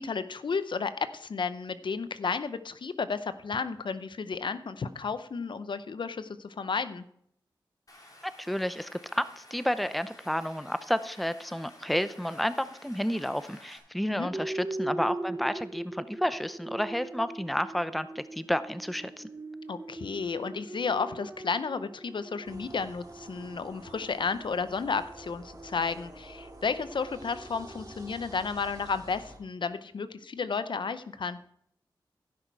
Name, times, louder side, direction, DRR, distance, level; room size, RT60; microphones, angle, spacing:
voice 1, 0.0-7.0 14.1-14.3 19.7-31.4, left 5 dB, 70° left, 13 dB, 0.6 m, -32 dB
Stream, 7.9-13.8, left 1 dB, 45° left, 3.2 m, -53 dB
voice 2, 8.2-19.3, equal, ahead, 13 dB, 0.6 m, -31 dB
sound 1, 14.3-28.5, right 2 dB, 25° right, 0.9 m, -41 dB
sound 2, 22.4-29.4, right 1 dB, 50° right, 2.5 m, -50 dB
15.5 x 6.1 x 4.6 m, 0.71 s
cardioid pair, 55°, 9 cm